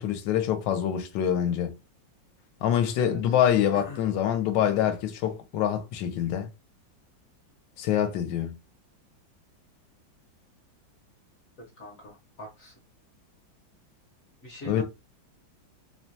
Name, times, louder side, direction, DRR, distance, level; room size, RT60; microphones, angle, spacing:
voice 1, 0.0-1.7 2.6-6.5 7.8-8.6 14.6-14.8, left 10 dB, 75° left, 1.2 m, -25 dB
voice 2, 3.0-3.4 3.7-4.0 11.8-12.8 14.4-14.8, left 1 dB, 55° left, 1.0 m, -42 dB
3.1 x 2.2 x 2.6 m
omnidirectional pair, 2.1 m